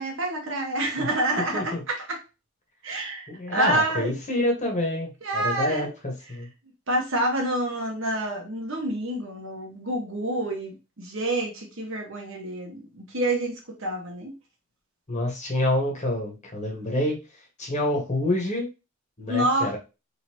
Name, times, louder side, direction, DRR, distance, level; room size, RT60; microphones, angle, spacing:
voice 1, 0.0-2.2 2.8-4.1 5.2-5.9 6.9-14.3 19.3-19.7, right 1 dB, 65° right, 1 dB, 1.6 m, -28 dB
voice 2, 3.3-6.5 15.1-17.2 17.6-18.7 19.2-19.8, left 1 dB, 35° left, 0 dB, 1.7 m, -27 dB
3.9 x 3.9 x 3.0 m, 0.28 s
head